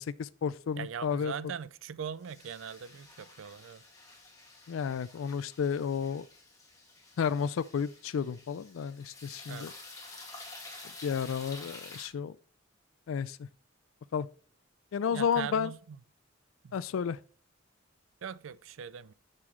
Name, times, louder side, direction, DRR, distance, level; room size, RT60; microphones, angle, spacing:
voice 1, 0.0-1.3 4.7-6.3 7.2-9.7 11.0-12.4 13.1-13.4 14.1-14.3 14.9-15.7 16.7-17.2, left 7 dB, 80° left, 0.4 m, -32 dB
voice 2, 0.8-3.8 9.5-9.7 15.1-16.0 16.6-16.8 18.2-19.1, right 7 dB, 75° right, 0.4 m, -40 dB
sound 1, 2.2-12.1, left 2 dB, 15° left, 2.2 m, -50 dB
7.0 x 6.7 x 3.2 m
head